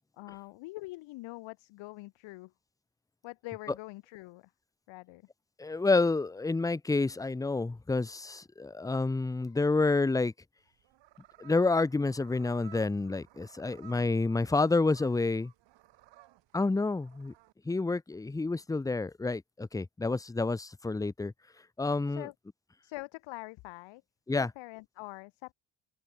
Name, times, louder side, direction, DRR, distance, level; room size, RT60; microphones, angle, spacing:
voice 1, 0.2-2.5 3.2-4.5 4.9-5.2 22.1-22.3 22.8-24.0 24.3-25.5, left 21 dB, 85° left, 1.9 m, -44 dB
voice 2, 5.6-10.3 11.4-15.5 16.5-17.3 17.7-21.3 21.8-22.3 24.3-24.5, left 3 dB, 10° left, 0.5 m, -29 dB
sound 1, 10.6-17.5, right 15 dB, 75° right, 1.9 m, -58 dB
open air
supercardioid pair, 70°, 44 cm